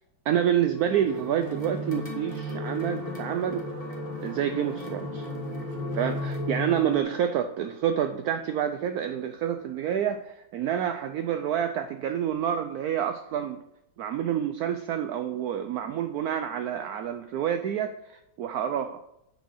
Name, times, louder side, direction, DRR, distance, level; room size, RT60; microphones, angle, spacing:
voice 1, 0.3-3.6 4.2-5.3 5.9-13.6 14.0-19.0, right 9 dB, 70° right, 8 dB, 1.0 m, -28 dB
sound 1, 0.7-7.0, left 1 dB, 20° left, 1.6 m, -34 dB
9.2 x 4.9 x 5.6 m, 0.83 s
omnidirectional pair, 1.9 m